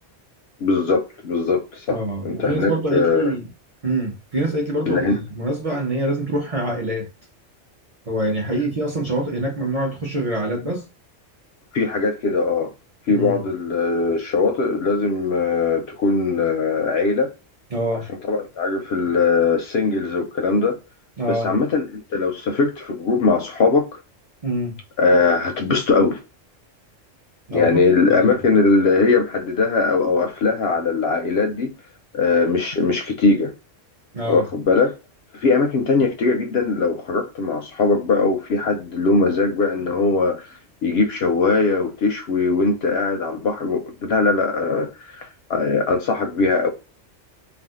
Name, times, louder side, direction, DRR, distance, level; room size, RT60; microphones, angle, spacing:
voice 1, 0.6-3.3 4.8-5.2 11.7-12.7 13.1-17.3 18.3-20.8 21.3-24.0 25.0-26.2 27.5-31.7 32.1-33.5 34.2-34.9 35.3-40.5 40.8-46.7, left 4 dB, 65° left, 0.7 m, -20 dB
voice 2, 1.9-3.4 3.8-7.1 8.1-10.9 13.1-13.4 17.7-18.1 21.2-21.5 24.4-24.8 27.5-28.3 34.1-34.4, right 1 dB, 35° right, 0.6 m, -25 dB
2.5 x 2.4 x 3.5 m
omnidirectional pair, 1.3 m